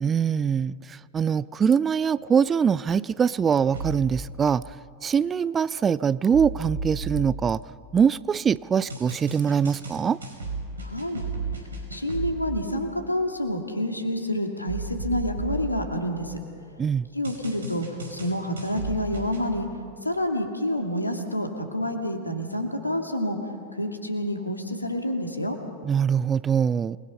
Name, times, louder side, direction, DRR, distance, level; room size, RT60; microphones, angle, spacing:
voice 1, 0.0-0.8 1.1-4.6 5.0-7.6 7.9-10.2 16.8-17.0 25.8-27.0, right 7 dB, 20° right, 19 dB, 0.4 m, -23 dB
sound 1, 3.7-4.3 6.3-8.2 8.9-12.6 14.7-16.5 17.2-19.5, right 3 dB, 70° right, 5.3 m, -35 dB
voice 2, 10.8-11.2 11.9-16.4 17.1-17.8 18.1-19.7 20.0-23.4 23.7-25.6, left 1 dB, 85° left, 4 dB, 2.4 m, -28 dB
28.0 x 21.0 x 5.6 m, 2.5 s
figure-of-eight pair, 90°, 0 cm